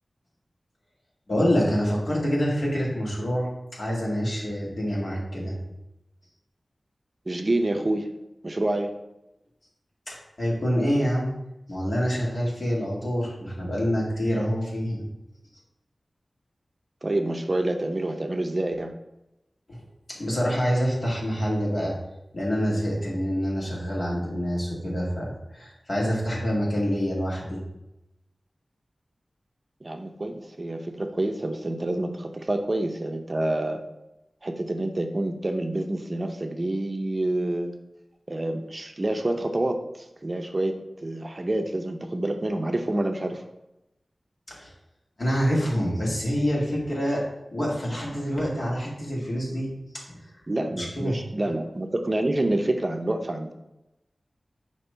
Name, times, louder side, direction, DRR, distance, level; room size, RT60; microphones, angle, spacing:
voice 1, 1.3-5.6 10.1-11.3 11.7-15.0 19.7-19.8 20.1-22.0 22.3-27.7 44.5-44.7 45.2-47.3 47.5-50.3 50.8-51.2, equal, 55° left, -4 dB, 2.0 m, -26 dB
voice 2, 7.3-8.1 8.4-8.9 17.0-18.9 29.8-33.8 34.4-37.7 38.3-40.7 41.0-43.4 50.5-53.5, right 1 dB, 40° right, 5 dB, 0.6 m, -27 dB
6.0 x 3.0 x 5.5 m, 0.92 s
wide cardioid pair, 75°, 0 cm